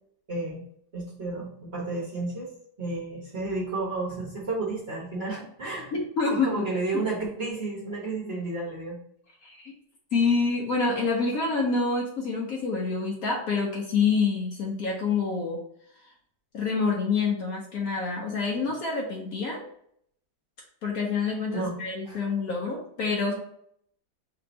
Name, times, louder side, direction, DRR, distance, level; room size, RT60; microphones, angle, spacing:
voice 1, 0.3-0.6 0.9-2.5 2.8-5.9 6.3-9.0 21.5-21.8 22.0-22.2, right 3 dB, 40° right, -5 dB, 1.2 m, -32 dB
voice 2, 5.9-6.7 6.9-7.0 9.4-9.7 10.1-15.6 16.5-19.6 20.8-23.3, left 4 dB, 60° left, -1 dB, 1.1 m, -27 dB
3.4 x 2.9 x 3.9 m, 0.68 s
omnidirectional pair, 1.9 m